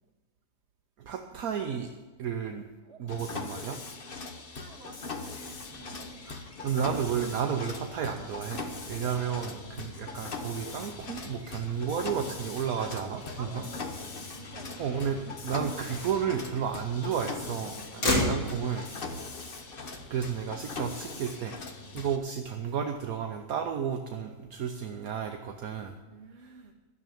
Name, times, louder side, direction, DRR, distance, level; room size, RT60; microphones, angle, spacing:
voice 1, 1.0-1.9 2.2-2.6 3.0-3.8 6.3-13.6 14.8-18.9 20.1-21.5 21.9-25.9 26.4-26.5, right 7 dB, 65° right, 4 dB, 1.3 m, -32 dB
Mechanisms, 3.1-22.2, left 4 dB, 40° left, 1.2 m, -40 dB
voice 2, 4.6-6.3 9.0-9.9 12.7-14.8 17.7-18.7 18.9-19.4 21.8-22.0 26.1-26.7, right 5 dB, 45° right, 1 dB, 1.8 m, -51 dB
Motor vehicle (road), 5.2-21.1, left 1 dB, 80° left, 3.2 m, -39 dB
12.5 x 7.0 x 9.1 m, 1.3 s
omnidirectional pair, 1.7 m